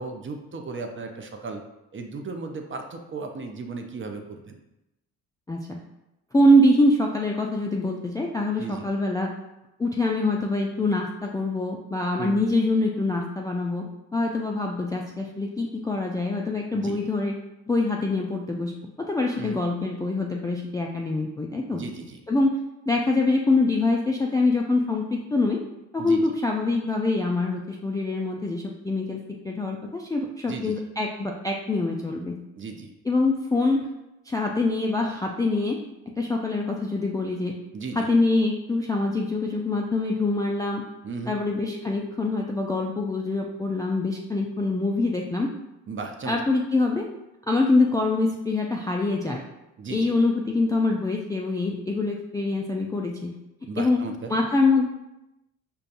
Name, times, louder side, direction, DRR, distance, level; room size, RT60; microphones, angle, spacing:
voice 1, 0.0-1.6 1.9-4.6 8.6-8.9 12.2-12.4 16.7-17.0 19.3-19.6 21.7-22.2 26.0-26.2 30.5-30.8 32.6-32.9 37.7-38.1 41.0-41.4 45.9-46.4 49.8-50.1 53.7-54.4, right 4 dB, 30° right, 4 dB, 0.6 m, -35 dB
voice 2, 5.5-5.8 6.3-9.3 9.8-17.3 17.7-21.8 22.3-22.6 22.9-25.6 25.9-32.4 33.1-33.9 34.3-35.8 36.2-37.6 38.0-40.8 41.3-45.5 46.3-47.1 47.5-49.4 49.9-53.4 53.7-54.0 54.3-54.9, left 2 dB, 10° left, -1 dB, 0.3 m, -24 dB
5.1 x 2.3 x 2.5 m, 0.92 s
hypercardioid pair, 55°, 39 cm